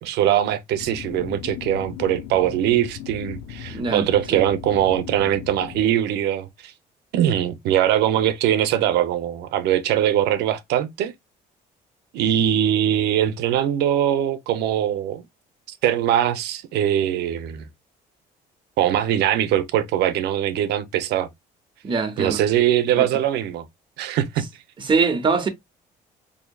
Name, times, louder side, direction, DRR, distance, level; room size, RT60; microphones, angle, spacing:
voice 1, 0.0-6.7 7.1-11.1 12.1-15.2 15.7-17.7 18.8-21.3 22.2-23.7 24.0-24.4, right 11 dB, 80° right, 0.6 m, -22 dB
sound 1, 0.8-5.9, left 11 dB, 70° left, 0.5 m, -37 dB
voice 2, 3.7-4.4 21.8-22.4 23.0-23.1 24.8-25.5, right 4 dB, 30° right, 0.9 m, -23 dB
4.3 x 2.7 x 2.3 m
cardioid pair, 110°, 17 cm